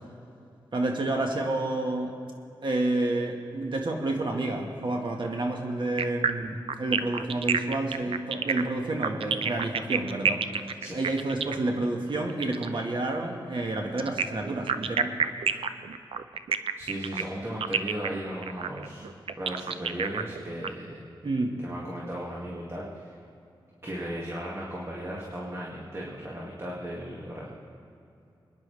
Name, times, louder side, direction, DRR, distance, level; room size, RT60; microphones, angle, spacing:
voice 1, 0.7-2.1 2.6-15.2 15.5-15.6 21.2-21.5, right 2 dB, 60° right, 2 dB, 1.8 m, -29 dB
sound 1, 6.0-12.8 14.0-20.7, right 6 dB, 85° right, 0.5 m, -29 dB
voice 2, 16.8-19.1 19.4-20.9 21.6-23.2 23.8-27.5, equal, 30° right, -5 dB, 2.3 m, -36 dB
25.0 x 10.5 x 3.5 m, 2.6 s
cardioid pair, 60°, 9 cm